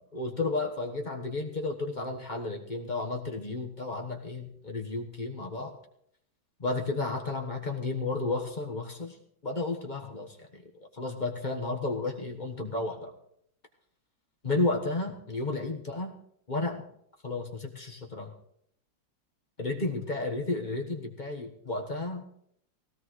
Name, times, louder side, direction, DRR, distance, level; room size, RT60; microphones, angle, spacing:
voice 1, 0.0-5.7 6.6-9.2 9.4-10.6 10.9-13.1 14.4-16.1 16.5-16.8 17.2-18.3 19.6-22.3, left 3 dB, 25° left, 1 dB, 1.2 m, -32 dB
19.0 x 17.0 x 3.2 m, 0.71 s
omnidirectional pair, 2.1 m